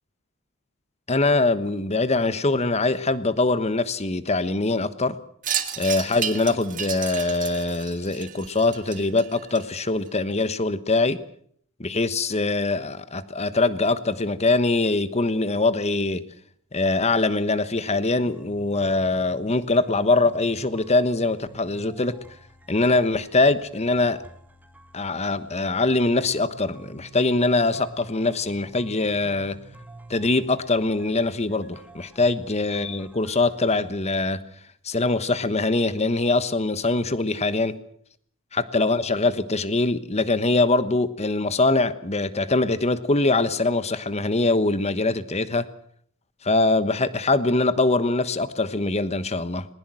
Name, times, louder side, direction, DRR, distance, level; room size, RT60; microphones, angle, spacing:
voice 1, 1.1-5.2 5.8-11.2 11.8-16.2 16.7-22.2 22.7-24.2 24.9-29.6 30.1-34.4 34.8-37.7 38.5-45.7 46.4-49.7, left 3 dB, 30° left, 14 dB, 1.2 m, -23 dB
Wind chime, 5.4-10.1, right 9 dB, 40° right, 2.0 m, -32 dB
sound 1, 18.2-34.2, right 2 dB, 10° right, 1.7 m, -48 dB
20.5 x 20.0 x 7.8 m, 0.62 s
head